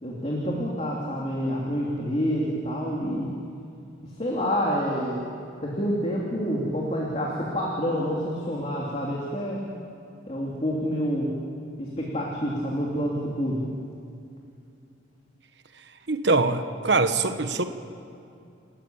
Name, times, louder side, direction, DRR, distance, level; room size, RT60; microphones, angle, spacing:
voice 1, 0.0-3.3 4.2-5.2 5.6-9.6 10.3-11.3 11.8-13.6, equal, 30° left, -3 dB, 2.9 m, -28 dB
voice 2, 16.1-17.7, right 3 dB, 60° right, 8 dB, 1.2 m, -23 dB
29.5 x 13.5 x 8.7 m, 2.5 s
head